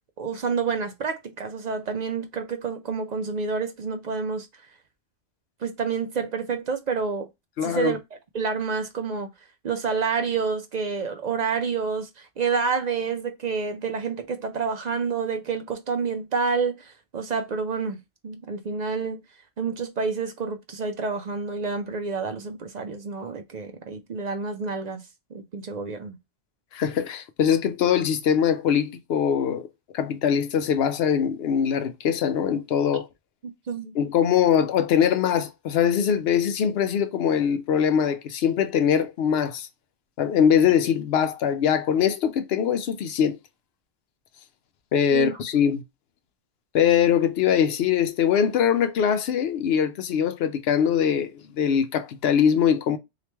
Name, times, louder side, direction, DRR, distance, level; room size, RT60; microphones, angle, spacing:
voice 1, 0.2-4.5 5.6-7.3 7.6-8.0 8.3-9.3 9.6-19.2 19.6-25.0 25.3-26.2 33.7-34.0 45.1-45.3, right 5 dB, 65° right, 0.4 m, -28 dB
voice 2, 7.6-7.9 26.7-29.7 29.9-33.1 33.9-39.7 40.2-43.4 44.9-45.8 46.7-53.0, left 8 dB, 65° left, 0.7 m, -22 dB
3.0 x 2.8 x 3.3 m
omnidirectional pair, 1.3 m